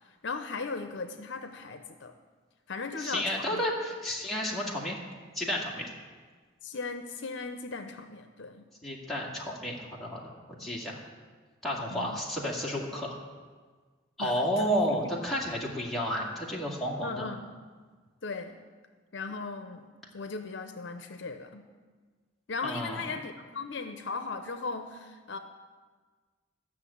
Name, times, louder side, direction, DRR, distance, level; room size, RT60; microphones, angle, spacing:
voice 1, 0.2-2.1 2.7-3.7 6.6-8.7 10.6-10.7 11.9-12.2 14.2-14.5 14.9-15.0 17.0-17.5 18.2-18.6 19.1-21.7 22.5-25.4, left 4 dB, 65° left, 8 dB, 0.7 m, -37 dB
voice 2, 3.0-5.0 5.3-5.9 8.8-11.0 11.6-13.2 14.2-17.3 22.6-23.1, equal, ahead, -4 dB, 2.1 m, -31 dB
13.0 x 6.4 x 8.5 m, 1.5 s
head